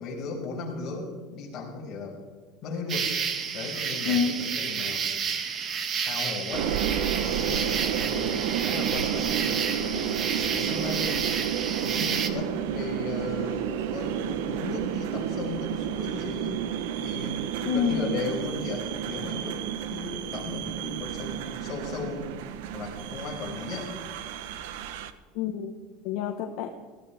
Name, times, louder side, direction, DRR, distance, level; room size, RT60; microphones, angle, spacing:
voice 1, 0.0-2.2 2.6-3.1 3.5-5.0 6.0-6.8 7.2-11.3 11.8-16.6 17.0-22.3 22.7-23.9, left 4 dB, 35° left, -3 dB, 5.6 m, -36 dB
sound 1, 2.9-12.3, right 6 dB, 30° right, 1.3 m, -30 dB
sound 2, 6.5-25.1, right 9 dB, 80° right, 1.0 m, -31 dB
voice 2, 17.6-18.2 25.3-25.7 26.0-26.7, left 8 dB, 60° left, 2 dB, 1.3 m, -27 dB
20.5 x 16.0 x 3.6 m, 1.4 s
cardioid pair, 160°, 0 cm